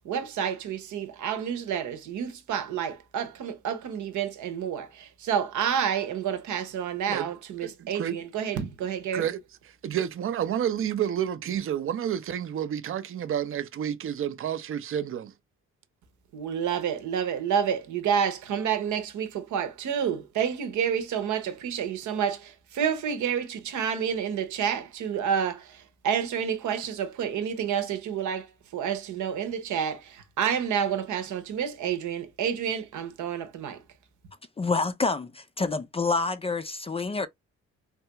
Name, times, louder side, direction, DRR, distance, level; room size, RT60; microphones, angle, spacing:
voice 1, 0.0-9.3 16.3-33.8, right 8 dB, 75° right, 0.8 m, -29 dB
voice 2, 7.6-8.2 8.5-8.7 9.1-9.4 9.8-15.3, right 9 dB, 45° right, 0.5 m, -30 dB
voice 3, 34.6-37.3, left 4 dB, 20° left, 0.4 m, -27 dB
3.3 x 2.3 x 2.8 m
cardioid pair, 90°, 30 cm